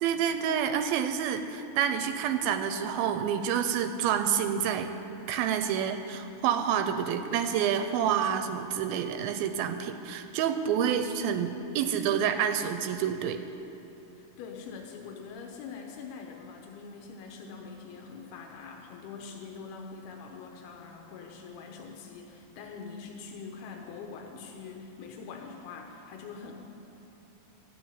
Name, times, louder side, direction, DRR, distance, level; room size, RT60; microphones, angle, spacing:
voice 1, 0.0-4.9 5.3-13.4, right 8 dB, 80° right, 8 dB, 2.4 m, -28 dB
voice 2, 14.2-26.5, left 5 dB, 85° left, 1 dB, 3.0 m, -44 dB
13.0 x 8.8 x 9.7 m, 2.9 s
omnidirectional pair, 4.5 m